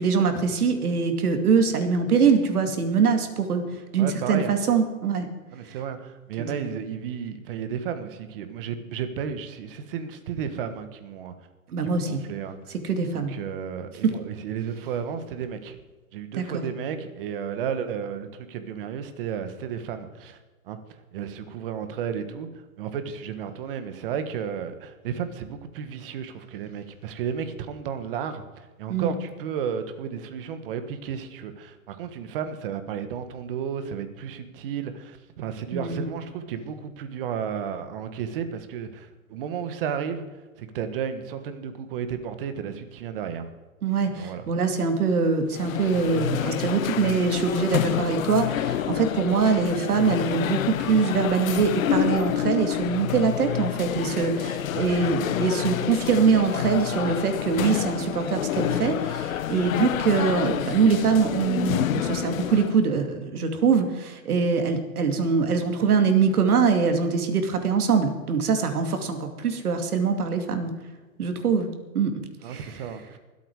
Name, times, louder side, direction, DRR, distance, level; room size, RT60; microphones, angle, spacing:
voice 1, 0.0-5.3 5.7-5.8 6.4-6.5 11.7-12.2 12.8-13.3 14.0-14.1 16.3-16.6 28.9-29.1 35.7-36.1 43.8-70.7 71.2-71.7 71.9-72.1 72.4-72.9, right 5 dB, 90° right, 6 dB, 2.6 m, -23 dB
voice 2, 4.0-4.6 5.5-11.3 11.8-12.7 13.1-15.8 16.1-20.4 20.6-20.8 21.1-40.2 40.6-43.5 44.2-44.4 54.7-55.1 72.4-73.2, right 7 dB, 40° right, 9 dB, 1.4 m, -33 dB
sound 1, 45.5-62.8, left 11 dB, 65° left, 0.9 m, -28 dB
24.0 x 8.4 x 4.8 m, 1.2 s
hypercardioid pair, 160°, 43 cm